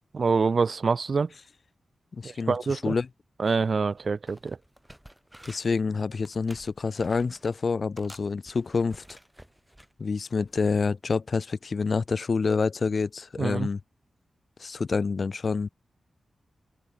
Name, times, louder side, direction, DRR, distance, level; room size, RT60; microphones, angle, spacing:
voice 1, 0.1-1.3 2.2-2.9 3.4-4.6 13.4-13.7, right 4 dB, 40° right, 1.5 m, -26 dB
voice 2, 2.1-3.1 5.5-9.0 10.0-13.8 14.6-15.7, left 4 dB, 40° left, 1.6 m, -27 dB
sound 1, 3.9-4.0 4.3-5.8 6.2-7.6 8.0-9.9 10.4-10.6, equal, 5° right, 4.5 m, -51 dB
wide cardioid pair, 175°, 0 cm